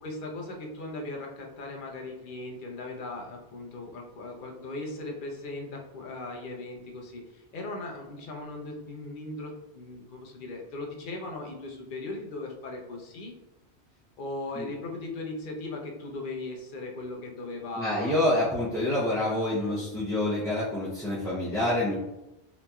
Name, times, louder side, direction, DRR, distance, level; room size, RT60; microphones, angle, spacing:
voice 1, 0.0-13.3 14.2-18.5, left 2 dB, 55° left, 0 dB, 0.8 m, -38 dB
voice 2, 17.8-21.9, left 1 dB, 5° left, -10 dB, 0.5 m, -27 dB
3.9 x 2.9 x 2.3 m, 0.93 s
omnidirectional pair, 1.1 m